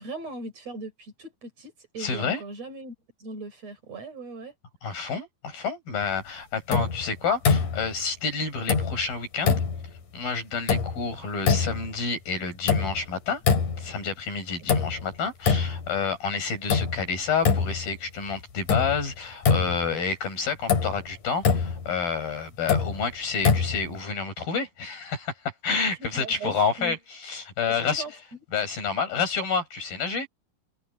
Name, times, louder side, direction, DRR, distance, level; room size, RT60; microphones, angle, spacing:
voice 1, 0.0-4.5 14.6-14.7 25.8-27.0 27.8-28.1, right 3 dB, 45° right, 6.0 m, -39 dB
voice 2, 2.0-2.4 4.8-9.6 10.1-13.4 13.8-25.3 25.6-28.0 28.5-30.3, left 5 dB, 85° left, 9.0 m, -29 dB
sound 1, 6.7-7.1 7.5-8.0 8.7-9.1 9.4-9.9 10.7-11.1 11.5-11.9 12.7-13.1 13.5-14.0 14.7-15.1 15.5-15.9 16.7-17.1 17.5-18.0 18.7-19.1 19.4-20.0 20.7-21.0 21.4-21.9 22.7-23.0 23.4-24.0, left 5 dB, 60° left, 4.6 m, -24 dB
omnidirectional pair, 4.1 m